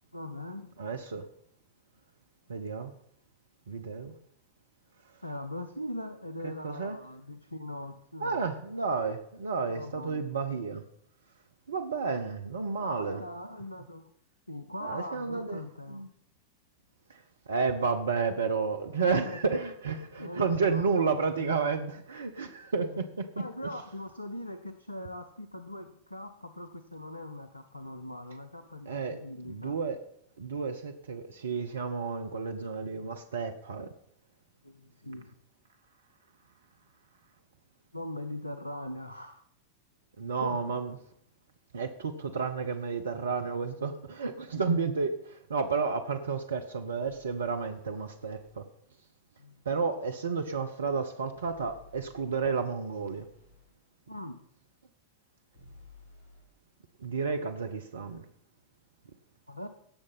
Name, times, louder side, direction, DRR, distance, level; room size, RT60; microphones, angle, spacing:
voice 1, 0.1-0.8 5.2-8.4 9.7-10.3 12.8-14.1 14.5-16.0 19.0-19.4 19.9-21.5 22.8-23.0 23.4-29.8 34.6-35.3 37.9-39.4 40.4-40.8 49.4-49.6 54.1-54.4 59.5-59.7, left 1 dB, 85° left, 9 dB, 0.7 m, -41 dB
voice 2, 0.8-1.2 2.5-2.9 3.7-4.1 6.4-7.0 8.2-10.8 11.7-13.2 14.8-15.6 15.9-16.1 17.1-23.4 28.9-29.2 29.4-30.0 30.4-33.9 40.2-40.9 41.7-48.6 49.7-53.2 57.0-58.2, right 5 dB, 70° right, 7 dB, 0.8 m, -31 dB
sound 1, 46.9-48.6 51.3-53.7 55.5-56.4, left 2 dB, 60° left, 5.2 m, -57 dB
17.0 x 6.6 x 5.4 m, 0.68 s
figure-of-eight pair, 90°, 0 cm